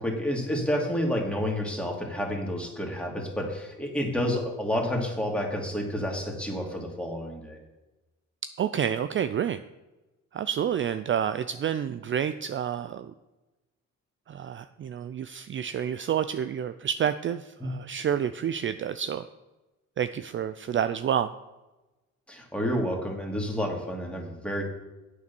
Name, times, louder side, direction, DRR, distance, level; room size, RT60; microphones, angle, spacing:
voice 1, 0.0-7.6 17.6-17.7 22.3-24.6, equal, 5° left, 0 dB, 2.5 m, -30 dB
voice 2, 8.6-9.6 10.3-13.1 14.3-19.2 20.0-21.3, right 9 dB, 40° right, 11 dB, 0.4 m, -29 dB
8.3 x 6.7 x 7.0 m, 1.1 s
cardioid pair, 90°, 30 cm